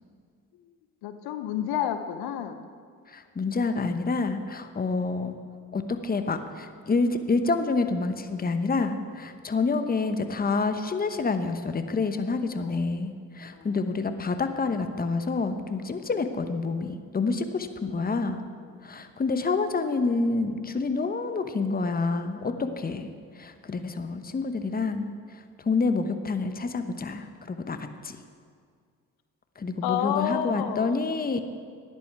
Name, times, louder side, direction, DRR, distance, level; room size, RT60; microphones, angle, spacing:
voice 1, 1.0-2.7 12.6-12.8 13.5-13.7 29.8-31.0, left 10 dB, 70° left, 9 dB, 0.8 m, -30 dB
voice 2, 3.1-5.4 5.7-18.5 18.8-28.2 29.6-31.4, left 4 dB, 25° left, 8 dB, 1.0 m, -28 dB
14.0 x 10.5 x 4.7 m, 2.1 s
hypercardioid pair, 55°, 39 cm